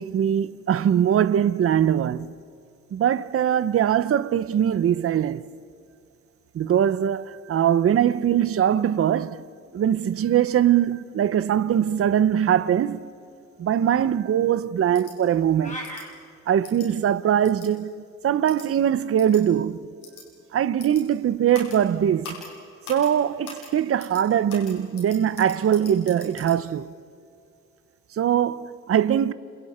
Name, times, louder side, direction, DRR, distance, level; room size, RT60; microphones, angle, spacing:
voice 1, 0.0-2.3 2.9-5.4 6.5-9.4 9.7-13.1 13.6-15.9 16.5-19.8 20.5-22.4 22.9-26.9 28.1-29.3, right 9 dB, 50° right, 0.8 m, -22 dB
sound 1, 14.9-15.1 15.8-16.0 16.6-16.9 17.4-17.7 18.5-18.7 19.2-19.4 20.0-20.2 20.8-21.0 21.5-21.8 22.2-22.5 22.8-23.1 23.4-23.7 24.0-24.2 24.5-26.6, left 4 dB, 90° left, 7.3 m, -42 dB
sound 2, 15.6-16.1, equal, 25° left, 4.7 m, -35 dB
29.5 x 28.0 x 4.4 m
cardioid pair, 90°, 30 cm